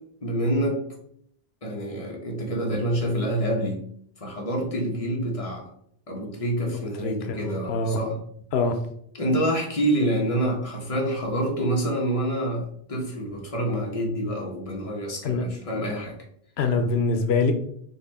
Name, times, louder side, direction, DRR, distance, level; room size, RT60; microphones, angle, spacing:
voice 1, 0.2-0.8 1.6-3.8 4.2-5.7 6.1-8.2 9.1-16.1, right 1 dB, 35° left, -1 dB, 1.2 m, -27 dB
voice 2, 7.0-8.0 8.5-8.8 15.2-15.4 16.6-17.5, left 4 dB, 90° left, 6 dB, 0.8 m, -24 dB
4.2 x 3.0 x 4.1 m, 0.66 s
omnidirectional pair, 1.0 m